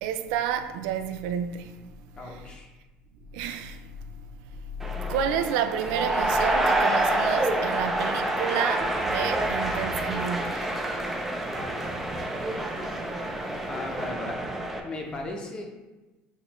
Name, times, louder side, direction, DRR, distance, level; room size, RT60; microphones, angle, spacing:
voice 1, 0.0-1.9 3.3-3.9 4.2-4.3 5.0-10.7 13.2-13.3, right 8 dB, 90° right, 0.3 m, -30 dB
voice 2, 2.1-2.7 13.7-14.4 14.8-15.6, left 2 dB, 25° left, 0.7 m, -36 dB
sound 1, 4.8-14.8, right 1 dB, 10° right, 0.5 m, -27 dB
7.1 x 2.4 x 3.0 m
cardioid pair, 140°, 3 cm